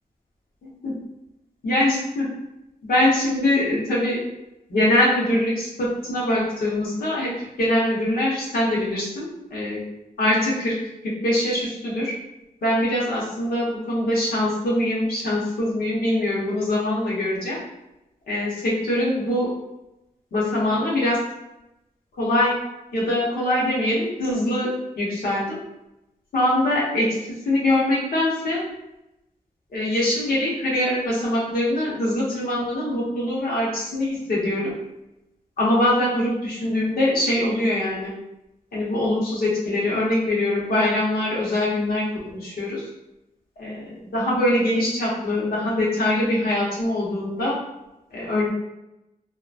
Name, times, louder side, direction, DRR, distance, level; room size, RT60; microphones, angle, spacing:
voice 1, 1.6-2.3 2.8-4.2 4.7-7.3 7.6-9.8 10.2-10.7 11.2-12.1 12.6-17.6 18.3-19.5 20.3-21.2 22.2-22.6 22.9-24.7 25.0-25.6 26.3-27.1 27.4-28.6 29.7-34.7 35.6-38.1 38.7-42.0 42.3-42.9 43.6-47.6 48.1-48.5, left 1 dB, 90° left, -5 dB, 0.9 m, -23 dB
2.8 x 2.2 x 2.4 m, 0.90 s
wide cardioid pair, 85°, 15 cm